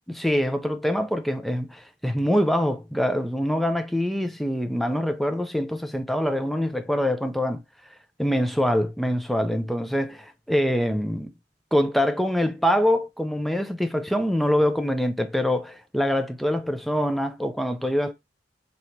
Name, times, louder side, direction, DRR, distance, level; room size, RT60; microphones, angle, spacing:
voice 1, 0.1-7.6 8.2-11.3 11.7-18.1, equal, ahead, 0.4 m, -24 dB
2.9 x 2.7 x 4.3 m
head